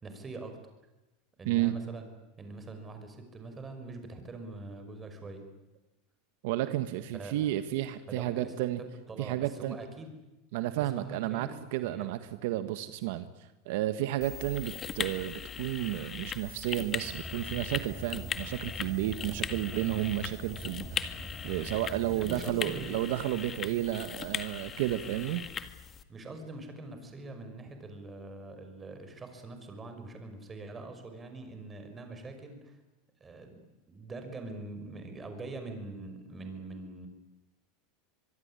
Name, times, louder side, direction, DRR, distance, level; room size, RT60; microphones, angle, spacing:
voice 1, 0.0-0.6 1.4-5.5 7.1-7.4 8.1-10.1 10.9-12.2 22.1-23.0 26.1-32.8 33.2-33.6 33.9-37.1, right 2 dB, 20° right, 6 dB, 5.7 m, -43 dB
voice 2, 6.4-8.8 9.2-9.8 10.5-21.2 21.4-25.4, right 14 dB, 70° right, 10 dB, 1.5 m, -32 dB
sound 1, 14.2-26.0, left 7 dB, 25° left, 1.9 m, -39 dB
Car, 17.0-22.4, equal, ahead, 4.6 m, -44 dB
25.0 x 22.0 x 9.9 m, 1.0 s
supercardioid pair, 135°, 0 cm